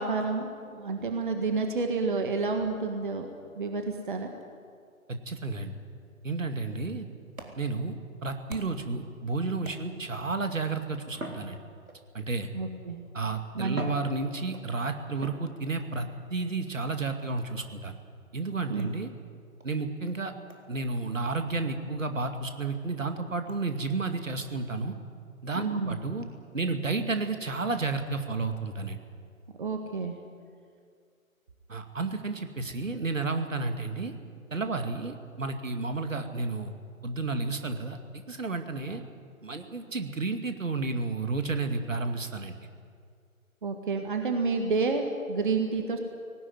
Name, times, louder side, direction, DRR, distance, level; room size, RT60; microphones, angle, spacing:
voice 1, 0.0-3.3 3.6-4.3 8.5-8.6 12.5-13.0 13.6-13.8 18.7-18.9 25.6-26.0 29.6-30.2 43.6-46.0, right 4 dB, 35° right, 5 dB, 1.8 m, -29 dB
voice 2, 5.1-5.7 6.2-7.1 7.6-7.9 8.2-11.6 12.1-12.5 13.1-18.0 18.3-19.1 19.6-20.3 20.7-24.9 25.4-26.3 26.5-29.0 31.7-34.1 34.5-36.7 37.0-38.0 38.3-39.0 39.4-42.6, right 3 dB, 65° right, 7 dB, 2.4 m, -31 dB
sound 1, 7.3-9.0 9.6-10.2 11.1-12.2 13.1-13.2 13.6-14.7 15.2-15.9 17.4-17.7 18.8-19.0 19.6-19.7 20.1-20.2 20.5-20.7 21.0-21.1 21.5-21.6 22.0-22.1 22.5-22.6 23.5-23.6, right 1 dB, 80° right, 3.9 m, -43 dB
19.5 x 18.5 x 9.7 m, 2.2 s
figure-of-eight pair, 145°, 42 cm